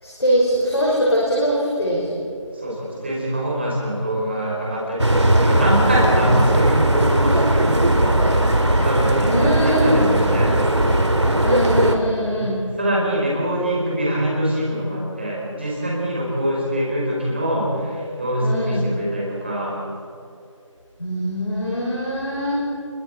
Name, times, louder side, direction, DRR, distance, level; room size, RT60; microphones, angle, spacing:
voice 1, 0.0-2.2 6.3-6.7 9.2-10.2 11.4-12.6 18.4-18.9 21.0-22.6, equal, 50° left, -4 dB, 5.3 m, -22 dB
voice 2, 2.5-10.5 12.2-12.5 12.8-19.8, equal, 20° right, -4 dB, 5.1 m, -24 dB
sound 1, 5.0-12.0, right 1 dB, 60° right, 2.5 m, -18 dB
28.5 x 22.5 x 4.5 m, 2.6 s
figure-of-eight pair, 175°, 17 cm